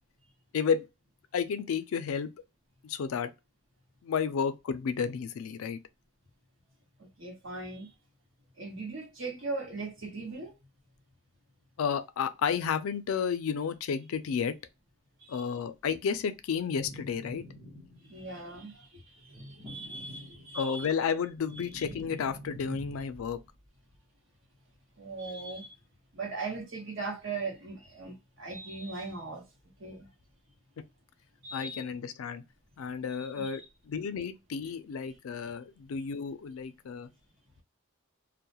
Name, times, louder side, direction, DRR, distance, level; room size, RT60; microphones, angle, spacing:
voice 1, 0.5-0.9 1.3-2.3 2.8-3.3 4.0-5.8 11.8-14.5 15.3-17.4 20.5-23.4 31.5-32.4 32.8-33.6 33.9-37.1, left 6 dB, 80° left, 0.4 m, -32 dB
voice 2, 7.0-7.9 8.6-10.5 15.2-15.4 18.0-20.9 21.7-21.8 25.0-25.8 26.1-29.5 29.8-30.1 31.4-31.8 33.1-33.6, right 3 dB, 65° right, 1.0 m, -39 dB
sound 1, 16.7-18.3 19.2-20.7 21.1-23.5, equal, 20° right, 0.9 m, -46 dB
2.3 x 2.0 x 2.8 m
head